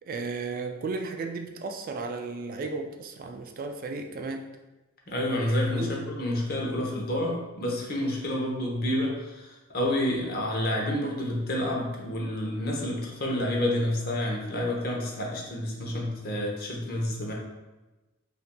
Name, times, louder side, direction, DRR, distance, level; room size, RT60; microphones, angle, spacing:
voice 1, 0.0-4.5 5.7-6.0, right 3 dB, 45° right, 5 dB, 0.3 m, -34 dB
voice 2, 5.1-17.3, left 1 dB, 45° left, -1 dB, 0.8 m, -29 dB
5.5 x 2.6 x 2.2 m, 1.1 s
head